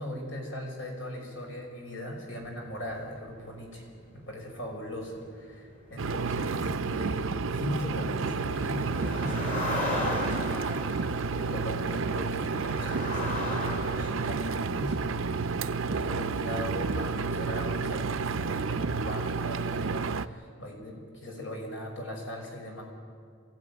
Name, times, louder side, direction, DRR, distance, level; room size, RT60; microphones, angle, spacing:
voice 1, 0.0-3.9 4.1-22.8, equal, 75° left, 0 dB, 5.7 m, -39 dB
sound 1, 2.3-17.7 17.9-18.3 18.7-18.9, left 1 dB, 40° left, 3.6 m, -39 dB
Engine, 6.0-20.3, right 4 dB, 75° right, 0.6 m, -31 dB
24.0 x 16.0 x 9.4 m, 2.2 s
head